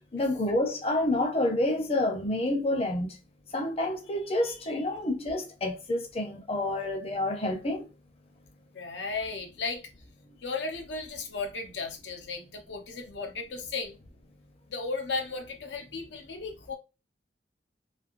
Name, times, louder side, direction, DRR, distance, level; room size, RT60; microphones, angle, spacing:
voice 1, 0.1-3.2 3.5-7.9, left 1 dB, 35° left, 0.6 m, -28 dB
voice 2, 8.7-9.8 10.4-14.0 14.7-16.8, left 4 dB, 90° left, 0.8 m, -35 dB
3.2 x 2.6 x 2.5 m
head